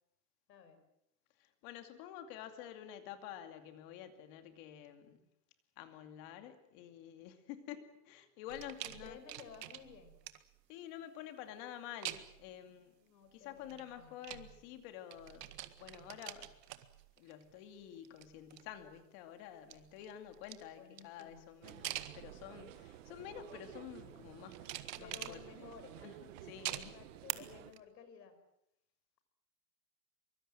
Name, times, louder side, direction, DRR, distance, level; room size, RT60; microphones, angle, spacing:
voice 1, 0.5-0.8 8.8-10.2 13.0-14.2 20.7-21.5 24.9-26.0 26.7-28.4, left 7 dB, 80° left, 10 dB, 5.9 m, -55 dB
voice 2, 1.4-5.2 5.8-9.2 10.7-12.9 13.3-15.5 15.8-16.5 17.2-25.7 26.0-27.0, left 10 dB, 35° left, 8 dB, 2.5 m, -50 dB
sound 1, 8.5-10.6 12.0-12.5 13.6-14.9 15.1-17.6 17.9-19.0 19.5-22.7 23.3-23.8 24.5-25.8 26.7-27.3 27.7-27.8, right 13 dB, 80° right, 1.9 m, -46 dB
sound 2, 21.6-27.7, right 12 dB, 50° right, 1.9 m, -53 dB
24.0 x 23.5 x 7.7 m, 0.82 s
supercardioid pair, 170°, 49 cm